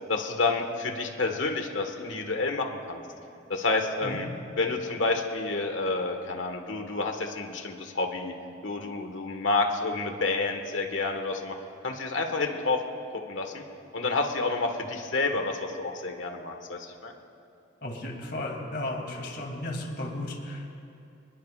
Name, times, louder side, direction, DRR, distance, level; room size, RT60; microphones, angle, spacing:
voice 1, 0.1-3.0 3.5-4.3 4.6-8.3 8.6-11.6 11.8-12.8 13.1-13.6 13.9-17.1, left 3 dB, 85° left, 4 dB, 1.6 m, -29 dB
voice 2, 17.8-20.6, left 1 dB, 55° left, 0 dB, 2.9 m, -34 dB
26.5 x 21.0 x 2.5 m, 2.6 s
head